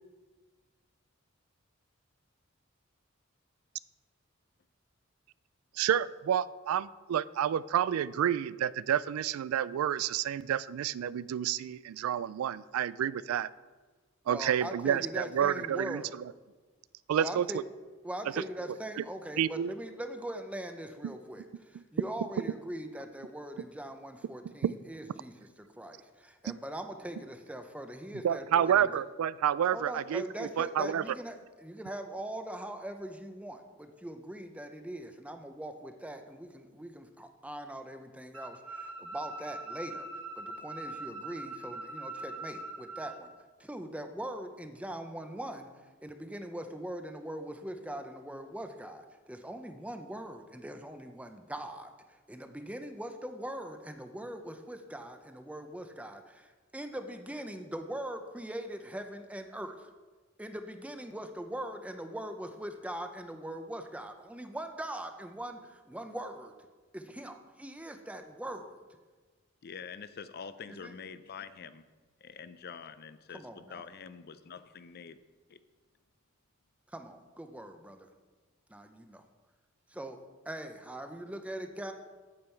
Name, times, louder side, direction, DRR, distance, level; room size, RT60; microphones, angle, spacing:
voice 1, 5.8-13.5 14.3-16.0 17.1-17.5 19.0-19.1 19.4-19.7 24.6-24.7 26.5-26.6 28.2-31.0, right 9 dB, 90° right, 19 dB, 0.3 m, -29 dB
voice 2, 14.3-16.2 17.2-17.6 18.0-25.3 25.6-28.9 29.7-40.1 40.4-43.3 43.6-45.7 46.0-59.9 60.4-66.5 66.9-68.8 70.7-70.9 73.3-73.8 76.9-78.1 78.7-79.2 79.9-80.2 80.5-81.9, right 1 dB, 5° right, 7 dB, 0.6 m, -41 dB
sound 1, 38.3-43.2, right 2 dB, 70° right, 1.4 m, -42 dB
voice 3, 69.6-71.8 72.2-75.2 75.5-75.6, left 6 dB, 50° left, 13 dB, 0.5 m, -46 dB
8.9 x 8.7 x 4.5 m, 1.3 s
head